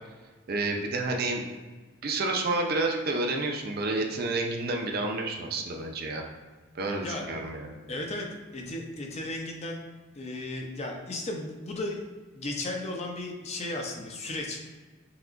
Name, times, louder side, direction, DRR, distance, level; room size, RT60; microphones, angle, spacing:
voice 1, 0.5-1.4 2.0-6.2 6.7-7.8, right 2 dB, 50° right, 2 dB, 0.5 m, -29 dB
voice 2, 7.9-8.3 8.5-9.8 10.1-12.1 12.3-14.7, left 2 dB, 35° left, 1 dB, 0.6 m, -35 dB
5.8 x 2.9 x 2.5 m, 1.3 s
head